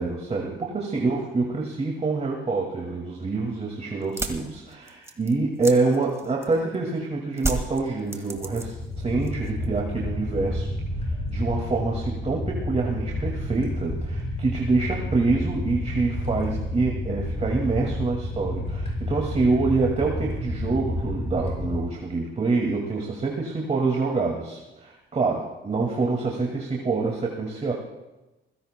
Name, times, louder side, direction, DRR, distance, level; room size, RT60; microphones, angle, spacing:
voice 1, 0.0-10.7 11.0-27.7, right 3 dB, 35° right, -1 dB, 2.1 m, -26 dB
sound 1, 4.0-6.7 7.4-8.9 9.2-9.8, right 2 dB, 15° right, 1.9 m, -32 dB
sound 2, 8.3-21.8, left 1 dB, 30° left, 5.9 m, -30 dB
27.0 x 16.5 x 2.2 m, 1.0 s
cardioid pair, 90°, 20 cm